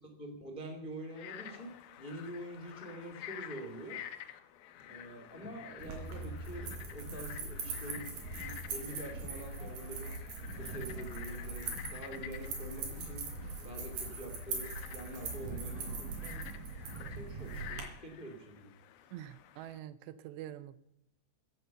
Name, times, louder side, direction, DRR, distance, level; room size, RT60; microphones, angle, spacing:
voice 1, 0.2-4.0 4.8-10.1 10.6-13.3 13.6-16.5 17.0-18.7, right 1 dB, 25° left, 4 dB, 1.2 m, -46 dB
Frog, 1.0-19.8, left 11 dB, 75° left, 2.4 m, -50 dB
sound 1, 4.8-14.0, left 1 dB, 40° left, 3.8 m, -57 dB
sound 2, 5.8-17.8, right 4 dB, 60° right, 4.9 m, -41 dB
voice 2, 19.1-20.8, right 12 dB, 80° right, 15 dB, 2.8 m, -46 dB
16.0 x 9.3 x 6.9 m, 0.78 s
omnidirectional pair, 5.1 m